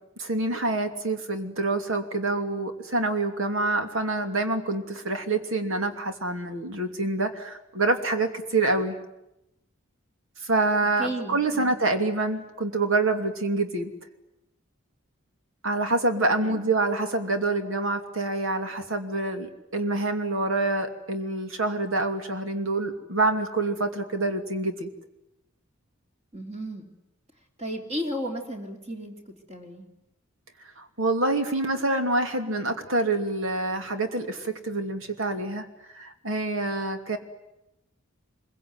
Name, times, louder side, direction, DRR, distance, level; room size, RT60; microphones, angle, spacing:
voice 1, 0.2-9.0 10.4-13.9 15.6-24.9 30.8-35.7 35.9-37.2, right 2 dB, 75° right, 6 dB, 2.8 m, -26 dB
voice 2, 11.0-11.7 16.4-16.7 26.3-26.9 27.6-29.9, equal, 30° right, 3 dB, 3.2 m, -34 dB
25.5 x 23.0 x 9.7 m, 0.89 s
head